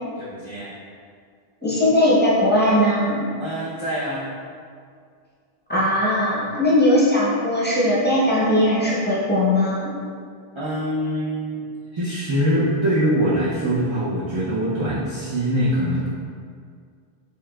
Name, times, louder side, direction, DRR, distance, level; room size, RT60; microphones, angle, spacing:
voice 1, 0.2-0.8 3.4-4.3 10.6-11.7 11.9-16.1, equal, 40° right, -8 dB, 0.4 m, -23 dB
voice 2, 1.6-3.2 5.7-9.9, left 1 dB, 10° left, -8 dB, 0.7 m, -19 dB
4.6 x 3.3 x 2.2 m, 2.1 s
omnidirectional pair, 1.0 m